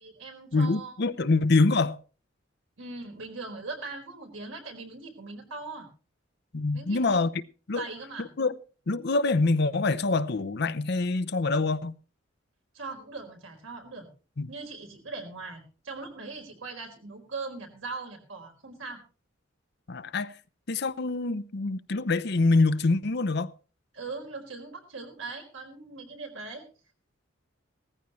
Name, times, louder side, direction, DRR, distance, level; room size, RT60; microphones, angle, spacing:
voice 1, 0.0-1.3 2.8-5.9 6.7-7.2 7.7-8.3 12.7-14.1 14.5-19.0 23.9-26.6, right 3 dB, 90° right, 4.5 m, -40 dB
voice 2, 0.5-2.0 6.5-7.3 7.7-7.8 8.2-8.6 8.9-12.0 14.4-14.5 19.9-20.3 20.7-23.5, left 3 dB, 55° left, 0.7 m, -25 dB
18.0 x 14.5 x 3.1 m
head